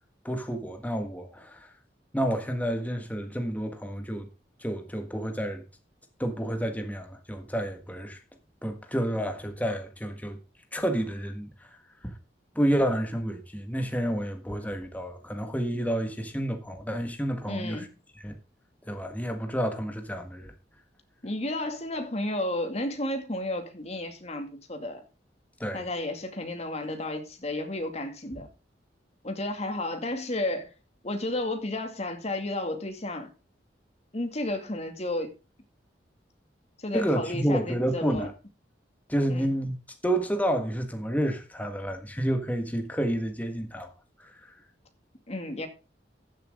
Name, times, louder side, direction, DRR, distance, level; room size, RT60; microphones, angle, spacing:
voice 1, 0.2-1.7 2.1-4.3 4.6-5.6 6.2-8.2 8.6-10.4 10.7-11.5 12.0-12.1 12.5-17.8 18.2-18.4 18.9-20.5 25.6-25.8 36.9-38.3 39.1-39.8 40.0-43.9 44.2-44.3, equal, 10° left, 1.6 m, -29 dB
voice 2, 17.5-17.9 21.2-25.0 25.7-28.5 29.2-30.7 31.0-33.3 34.1-35.4 36.8-38.3 39.3-39.5 45.3-45.7, left 1 dB, 35° left, 2.2 m, -32 dB
14.5 x 7.6 x 3.7 m
head